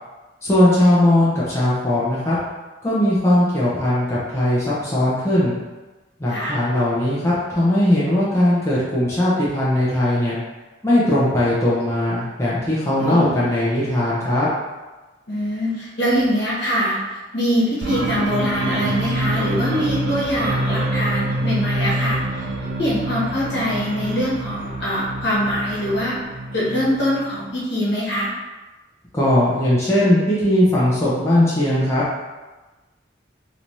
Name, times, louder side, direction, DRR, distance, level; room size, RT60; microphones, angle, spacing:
voice 1, 0.4-2.4 2.8-5.6 6.2-10.4 10.8-14.5 29.1-32.0, left 1 dB, 15° left, -8 dB, 0.6 m, -19 dB
voice 2, 13.0-13.5 15.3-17.0 17.3-22.2 22.8-26.1 26.5-28.3, equal, 65° left, -7 dB, 1.2 m, -23 dB
sound 1, 17.8-27.4, right 1 dB, 70° right, 0.5 m, -26 dB
3.2 x 3.0 x 2.6 m, 1.2 s
head